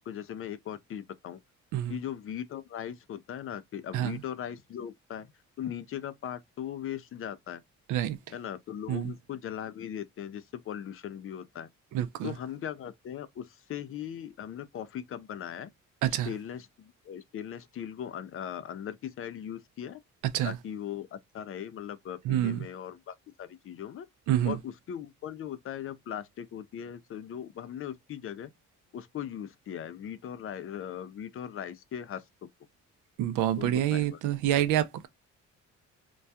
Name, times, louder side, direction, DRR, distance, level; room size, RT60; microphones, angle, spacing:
voice 1, 0.0-1.4 1.9-5.3 5.6-7.6 8.3-11.7 12.2-15.7 16.3-20.0 20.4-24.1 24.4-28.5 28.9-32.3 33.6-34.2, left 9 dB, 45° left, 0.4 m, -39 dB
voice 2, 11.9-12.3 16.0-16.3 20.2-20.6 22.2-22.7 24.3-24.6 33.2-35.1, right 12 dB, 90° right, 0.4 m, -27 dB
2.2 x 2.2 x 2.6 m
cardioid pair, 90°, 30 cm